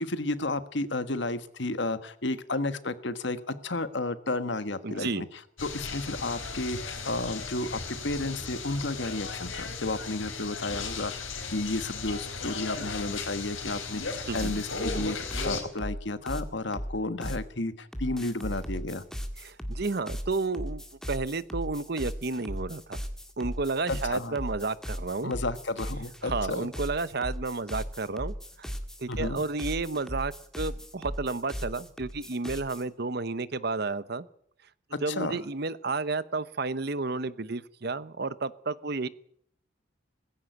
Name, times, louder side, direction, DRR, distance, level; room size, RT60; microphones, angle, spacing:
voice 1, 0.0-5.3 5.6-19.0 23.9-24.4 25.2-26.7 29.1-29.4 34.9-35.4, left 2 dB, 60° left, 12 dB, 1.5 m, -32 dB
voice 2, 4.8-5.2 14.3-14.6 19.4-20.8 21.1-23.0 23.4-25.3 26.2-28.7 29.0-34.2 35.0-39.1, right 3 dB, 55° right, 16 dB, 0.9 m, -31 dB
sound 1, 5.6-15.6, left 4 dB, 85° left, 4.7 m, -36 dB
sound 2, 14.4-17.5 17.9-32.8, equal, 5° left, 1.9 m, -37 dB
19.5 x 16.0 x 9.3 m, 0.68 s
head